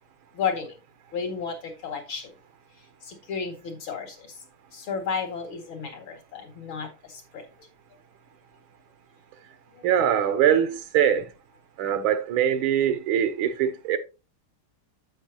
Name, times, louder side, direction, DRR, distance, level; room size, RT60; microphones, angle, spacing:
voice 1, 0.3-0.8 1.1-2.3 2.8-4.4 4.7-7.7 9.7-9.9, left 6 dB, 80° left, 2.9 m, -33 dB
voice 2, 9.8-11.3 11.8-14.0, right 9 dB, 85° right, 1.7 m, -23 dB
8.9 x 7.9 x 2.8 m
omnidirectional pair, 2.2 m